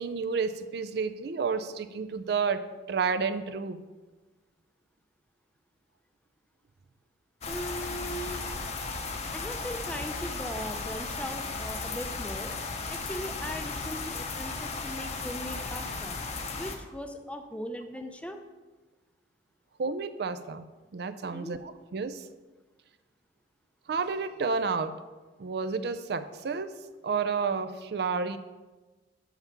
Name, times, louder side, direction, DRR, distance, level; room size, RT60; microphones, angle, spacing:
voice 1, 0.0-3.8 19.8-22.3 23.9-25.0 25.4-28.4, right 5 dB, 60° right, 11 dB, 0.4 m, -31 dB
sound 1, 7.4-16.8, left 3 dB, 35° left, 0.8 m, -35 dB
voice 2, 7.5-8.4 9.3-12.5 12.9-16.2 16.6-18.4 21.3-21.6, equal, 5° left, 6 dB, 0.5 m, -39 dB
5.8 x 5.8 x 7.0 m, 1.2 s
head